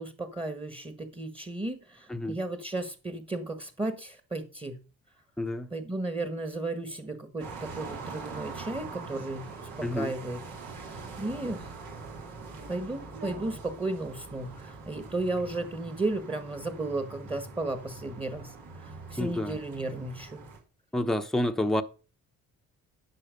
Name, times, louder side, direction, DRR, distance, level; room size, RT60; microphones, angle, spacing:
voice 1, 0.0-4.8 5.7-10.4 10.7-11.7 12.7-20.5, right 2 dB, 15° right, 1.5 m, -34 dB
voice 2, 5.4-5.7 9.8-10.1 19.2-19.6 20.9-21.8, left 1 dB, ahead, 0.9 m, -28 dB
sound 1, 7.4-20.6, right 4 dB, 75° right, 3.2 m, -43 dB
10.0 x 6.2 x 5.2 m
supercardioid pair, 70°, 35 cm